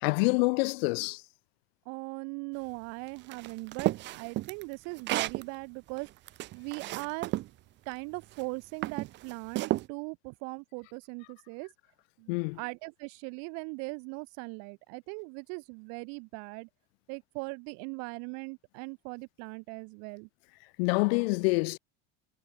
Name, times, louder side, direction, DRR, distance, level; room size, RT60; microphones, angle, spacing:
voice 1, 0.0-1.2 12.3-12.6 20.8-21.8, left 29 dB, 85° left, 1.4 m, -26 dB
voice 2, 1.9-6.1 6.5-7.3 7.9-11.7 12.2-16.7 17.1-20.3, right 37 dB, 65° right, 6.1 m, -40 dB
sound 1, 3.3-5.4 6.0-7.5 8.2-8.4 8.8-9.9, right 16 dB, 40° right, 0.9 m, -32 dB
cardioid pair, 165°, 30 cm